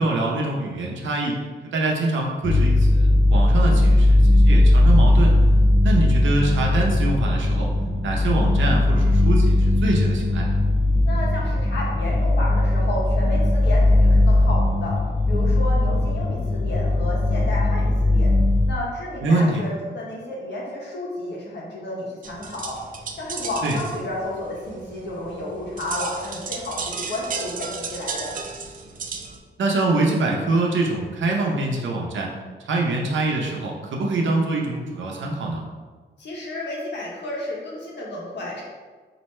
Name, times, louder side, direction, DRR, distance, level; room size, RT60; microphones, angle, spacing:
voice 1, 0.0-1.4 1.7-5.3 5.8-7.7 8.0-10.5 19.2-19.6 23.6-23.8 29.6-32.3 32.7-35.6, right 2 dB, 90° right, -1 dB, 0.7 m, -24 dB
sound 1, 2.4-18.7, left 1 dB, 25° left, 0.4 m, -18 dB
voice 2, 11.0-15.0 15.3-18.3 18.6-22.8 23.2-28.3 36.2-38.6, left 1 dB, 65° left, -4 dB, 1.1 m, -31 dB
sound 2, 22.2-29.4, right 5 dB, 45° right, 0.4 m, -34 dB
4.3 x 2.7 x 3.1 m, 1.4 s
wide cardioid pair, 170°, 19 cm